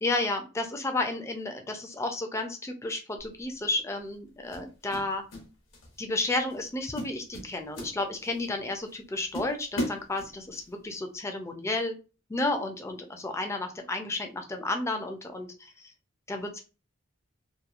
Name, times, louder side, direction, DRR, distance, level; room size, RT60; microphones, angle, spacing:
voice 1, 0.0-5.2 6.0-12.0 12.3-15.9 16.3-16.6, left 2 dB, 15° left, 5 dB, 0.3 m, -32 dB
sound 1, 3.2-3.4 4.5-5.5 5.7-6.0 6.5-6.7 7.0-8.5 8.9-9.0 9.3-10.7, equal, 70° left, 0.8 m, -36 dB
2.8 x 2.2 x 2.4 m, 0.33 s
head